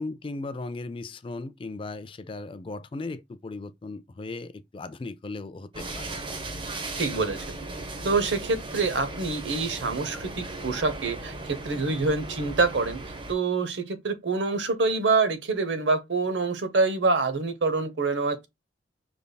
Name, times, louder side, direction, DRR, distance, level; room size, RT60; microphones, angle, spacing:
voice 1, 0.0-6.2, left 3 dB, 30° left, 0.3 m, -37 dB
sound 1, 5.7-13.3, right 2 dB, 30° right, 0.8 m, -37 dB
voice 2, 7.0-7.5 8.0-13.0 13.3-18.5, right 3 dB, 80° right, 0.8 m, -26 dB
5.2 x 3.4 x 2.2 m
head